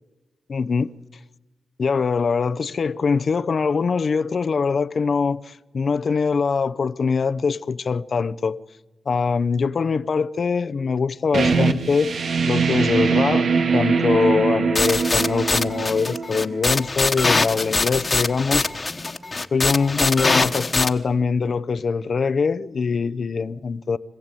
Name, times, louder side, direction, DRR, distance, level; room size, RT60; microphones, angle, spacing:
voice 1, 0.5-0.9 1.8-8.6 9.1-12.2 12.5-13.5 13.7-18.7 19.5-24.0, left 5 dB, 60° left, 0.7 m, -23 dB
sound 1, 11.3-16.8, right 5 dB, 75° right, 2.0 m, -22 dB
sound 2, 14.8-20.9, left 3 dB, 35° left, 1.4 m, -23 dB
26.0 x 16.0 x 9.1 m
cardioid pair, 65°, 0 cm